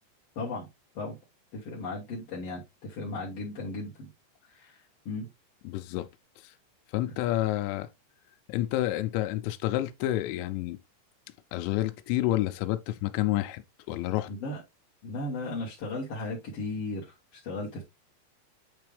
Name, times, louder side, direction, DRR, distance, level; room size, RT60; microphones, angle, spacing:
voice 1, 0.3-0.6 0.9-1.2 1.5-4.1 4.5-4.8 5.0-5.3 14.3-14.6 15.0-17.1 17.4-17.8, left 2 dB, 60° left, 1.7 m, -35 dB
voice 2, 5.6-6.1 6.4-6.5 6.9-7.9 8.5-10.8 11.5-13.6 13.9-14.3, left 15 dB, 90° left, 2.9 m, -29 dB
9.0 x 3.4 x 3.3 m
omnidirectional pair, 5.1 m